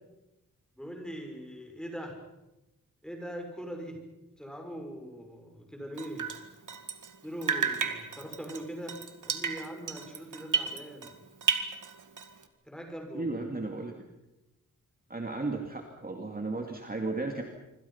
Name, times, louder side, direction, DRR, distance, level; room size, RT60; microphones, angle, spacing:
voice 1, 0.8-2.2 3.0-4.0 4.4-6.3 7.2-9.0 9.2-11.1 12.6-13.4, equal, ahead, 3 dB, 6.2 m, -41 dB
Drip, 6.0-7.2 7.4-11.1 11.4-12.4, right 6 dB, 65° right, 2.0 m, -33 dB
voice 2, 13.1-13.9 15.1-17.4, right 3 dB, 25° right, 3 dB, 2.4 m, -34 dB
26.0 x 26.0 x 5.8 m, 0.95 s
wide cardioid pair, 120°, 33 cm